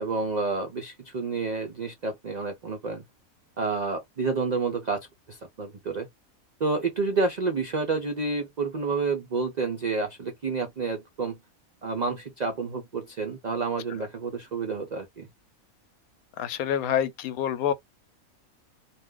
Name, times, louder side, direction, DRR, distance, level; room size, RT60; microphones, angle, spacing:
voice 1, 0.0-3.0 3.6-6.1 6.6-11.4 11.8-15.3, right 4 dB, 75° right, 0.4 m, -29 dB
voice 2, 16.4-17.7, left 9 dB, 80° left, 1.0 m, -27 dB
2.5 x 2.2 x 3.6 m
omnidirectional pair, 1.5 m